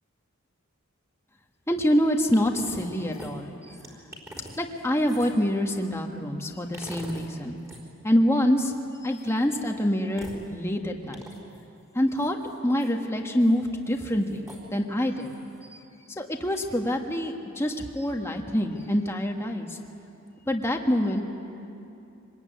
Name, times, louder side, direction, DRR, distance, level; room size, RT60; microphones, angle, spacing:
voice 1, 1.7-3.8 4.6-7.6 8.0-8.7 9.0-11.2 11.9-12.4 12.6-15.3 15.6-15.8 16.1-19.8 20.5-21.2, equal, 10° left, 2 dB, 1.5 m, -26 dB
sound 1, 2.3-2.9 3.1-5.5 6.7-7.3 7.6-7.8 9.1-9.6 10.1-10.4 11.1-11.6 12.2-12.9 13.4-13.5 13.9-14.6 15.2-15.6, equal, 15° right, 3.9 m, -44 dB
25.5 x 20.0 x 9.3 m, 2.8 s
head